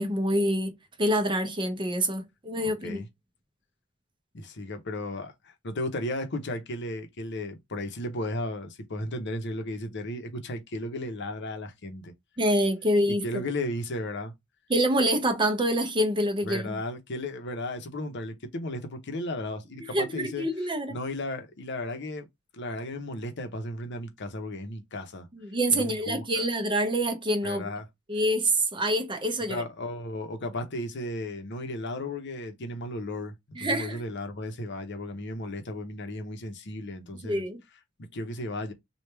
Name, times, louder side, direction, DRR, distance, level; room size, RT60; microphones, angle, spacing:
voice 1, 0.0-3.0 12.4-13.2 14.7-16.8 19.9-21.0 25.3-27.6 28.1-29.6 33.6-34.0 37.2-37.6, right 1 dB, 25° right, 0.7 m, -26 dB
voice 2, 2.6-3.1 4.3-12.1 13.1-14.3 16.4-20.5 20.9-22.3 22.5-25.3 25.7-26.5 27.4-27.9 29.5-37.4 38.1-38.7, left 1 dB, 55° left, 0.8 m, -35 dB
3.3 x 2.4 x 4.4 m
head